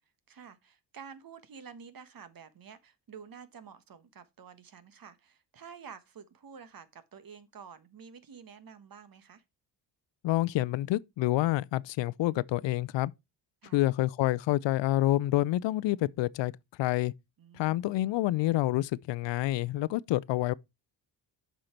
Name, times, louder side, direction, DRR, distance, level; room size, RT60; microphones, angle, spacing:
voice 1, 0.3-9.4 13.6-13.8 17.4-17.9, right 6 dB, 50° right, 1.4 m, -50 dB
voice 2, 10.2-13.1 13.7-16.5 16.8-17.1 17.5-20.5, left 16 dB, 70° left, 0.6 m, -28 dB
7.7 x 5.7 x 4.4 m
supercardioid pair, 70°, 46 cm